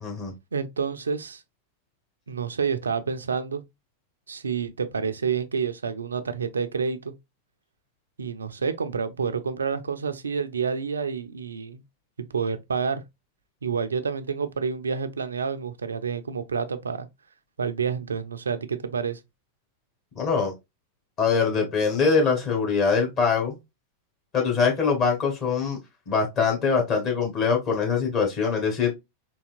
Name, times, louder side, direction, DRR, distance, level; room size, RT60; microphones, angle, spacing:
voice 1, 0.0-0.3 20.2-20.5 21.2-23.6 24.3-25.8 26.1-28.9, left 5 dB, 35° left, 1.8 m, -23 dB
voice 2, 0.5-1.4 2.3-3.6 4.3-7.1 8.2-11.8 12.2-13.0 13.6-17.1 17.6-19.2, right 6 dB, 70° right, 0.4 m, -29 dB
4.0 x 2.8 x 2.3 m
figure-of-eight pair, 90°, 0 cm